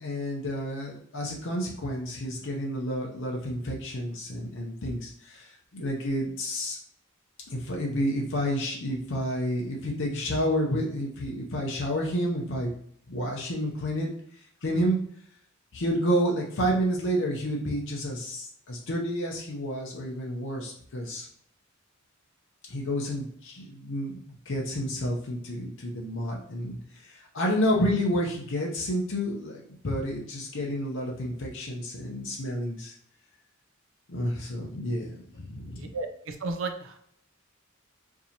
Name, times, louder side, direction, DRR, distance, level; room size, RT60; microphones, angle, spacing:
voice 1, 0.0-6.8 7.5-12.7 13.1-14.1 14.6-15.0 15.7-21.3 22.7-32.9 34.1-35.9, equal, 65° left, -1 dB, 0.7 m, -30 dB
voice 2, 35.7-37.0, right 3 dB, 65° right, 6 dB, 0.6 m, -34 dB
4.7 x 2.7 x 2.8 m, 0.66 s
head